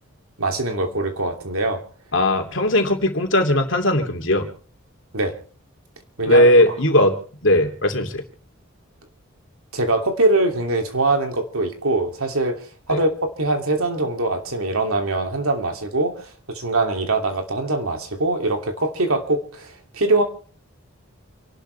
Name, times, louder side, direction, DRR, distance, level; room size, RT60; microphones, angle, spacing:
voice 1, 0.4-1.8 5.1-5.3 6.2-6.5 9.7-20.2, right 2 dB, 85° right, 4 dB, 2.8 m, -23 dB
voice 2, 2.1-4.5 6.3-7.2 7.4-8.2 12.9-13.0, left 1 dB, 60° left, 4 dB, 2.8 m, -18 dB
29.0 x 12.0 x 3.4 m, 0.43 s
head